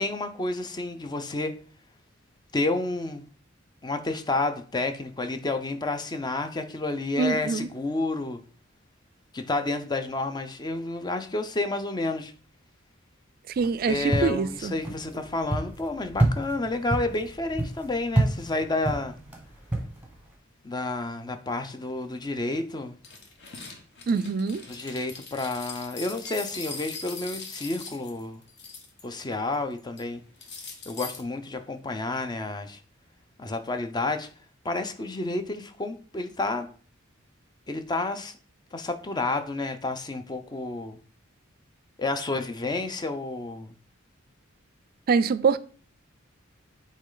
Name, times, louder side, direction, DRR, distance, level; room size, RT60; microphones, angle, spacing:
voice 1, 0.0-1.5 2.5-3.2 3.8-8.4 9.3-12.3 13.9-19.2 20.6-23.0 24.7-28.4 29.0-30.2 30.9-32.8 33.4-34.3 34.6-36.7 37.7-38.3 38.7-41.0 42.0-43.7, left 2 dB, 20° left, 0.6 m, -30 dB
voice 2, 7.2-7.7 13.5-14.7 24.1-24.6 45.1-45.6, right 5 dB, 45° right, 0.3 m, -24 dB
sound 1, 13.5-20.3, right 1 dB, 10° right, 1.4 m, -30 dB
sound 2, 23.0-29.2 29.5-30.0 30.4-31.2, left 4 dB, 55° left, 1.1 m, -41 dB
8.4 x 3.2 x 3.9 m
head